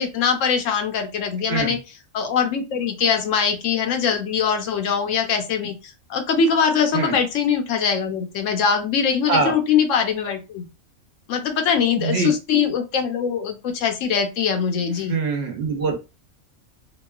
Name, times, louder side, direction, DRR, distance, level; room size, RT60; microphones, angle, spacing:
voice 1, 0.0-1.8 2.1-5.7 6.1-10.7 11.3-15.2, left 6 dB, 75° left, 6 dB, 0.9 m, -22 dB
voice 2, 11.9-12.3 15.1-16.0, right 4 dB, 60° right, 4 dB, 0.9 m, -23 dB
2.8 x 2.3 x 2.2 m, 0.28 s
omnidirectional pair, 1.4 m